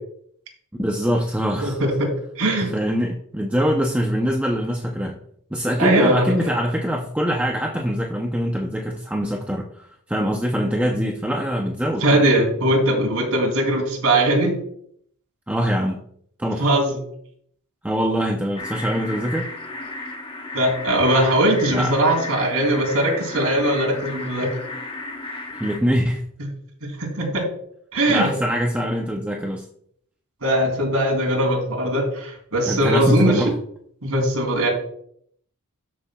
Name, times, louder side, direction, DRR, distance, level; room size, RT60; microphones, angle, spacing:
voice 1, 0.8-1.8 2.6-5.2 5.5-12.2 15.5-16.0 16.4-16.7 17.8-19.5 21.7-21.9 25.6-26.2 28.1-29.6 32.7-33.5, equal, 5° right, 1 dB, 0.6 m, -23 dB
voice 2, 1.6-2.1 2.4-2.7 5.8-6.5 12.0-14.6 16.6-17.0 20.5-24.6 26.8-27.4 27.9-28.3 30.4-33.4 34.0-34.7, right 1 dB, 70° right, 0 dB, 3.2 m, -20 dB
sound 1, 18.6-25.8, left 2 dB, 25° left, 1.1 m, -34 dB
13.0 x 6.9 x 2.3 m, 0.66 s
head